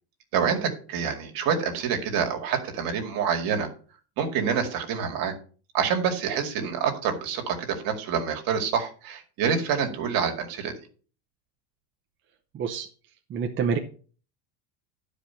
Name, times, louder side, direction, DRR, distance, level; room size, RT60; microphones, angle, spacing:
voice 1, 0.3-3.7 4.2-5.3 5.7-10.7, right 7 dB, 50° right, 5 dB, 2.2 m, -27 dB
voice 2, 12.5-12.9 13.3-13.8, right 6 dB, 25° right, 3 dB, 0.8 m, -27 dB
12.0 x 5.0 x 5.6 m, 0.39 s
cardioid pair, 160°, 45 cm